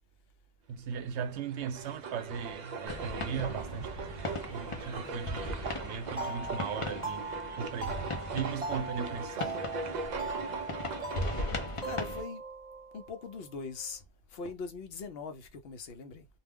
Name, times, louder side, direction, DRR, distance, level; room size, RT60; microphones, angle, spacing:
voice 1, 0.7-7.3 7.6-9.6, right 7 dB, 85° right, 0.9 m, -38 dB
sound 1, 0.9-11.7, right 4 dB, 55° right, 0.5 m, -40 dB
sound 2, 2.9-12.2, left 2 dB, 35° left, 0.6 m, -39 dB
sound 3, 6.1-13.6, right 3 dB, 35° right, 0.9 m, -40 dB
voice 2, 10.2-10.8 11.8-12.4 12.9-16.3, left 4 dB, 65° left, 0.8 m, -42 dB
2.4 x 2.2 x 3.5 m
omnidirectional pair, 1.1 m